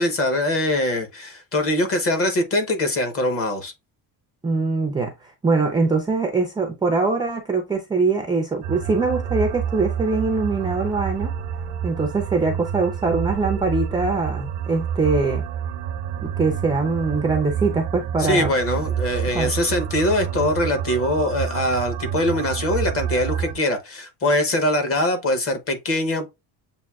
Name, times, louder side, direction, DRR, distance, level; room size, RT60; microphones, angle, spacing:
voice 1, 0.0-3.7 18.2-26.3, left 1 dB, 30° left, 0.8 m, -22 dB
voice 2, 4.4-11.4 11.8-15.4 16.2-18.5 19.3-19.5, right 3 dB, 10° right, 0.3 m, -23 dB
sound 1, 8.6-23.6, right 8 dB, 70° right, 0.6 m, -28 dB
7.2 x 2.5 x 2.3 m
cardioid pair, 175°, 44 cm